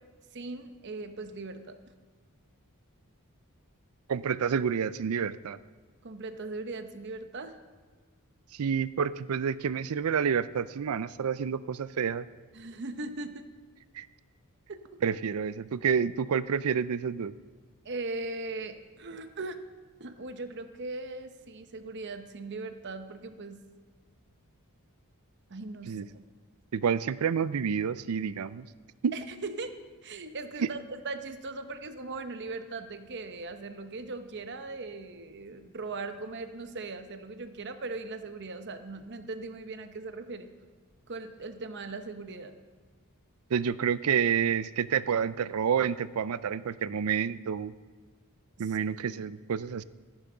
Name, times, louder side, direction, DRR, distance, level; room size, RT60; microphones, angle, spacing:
voice 1, 0.3-1.8 6.0-7.6 12.5-13.5 14.7-15.0 17.8-19.6 20.0-23.6 25.5-26.2 29.1-29.8 30.0-40.5 41.1-42.6 48.6-48.8, right 3 dB, 50° right, 9 dB, 0.8 m, -39 dB
voice 2, 4.1-5.6 8.6-12.2 14.0-14.1 15.0-17.3 25.9-26.0 26.7-28.7 29.0-29.1 30.6-30.7 43.5-47.7 48.6-49.8, right 7 dB, 75° right, 17 dB, 0.4 m, -29 dB
13.5 x 11.5 x 3.9 m, 1.4 s
head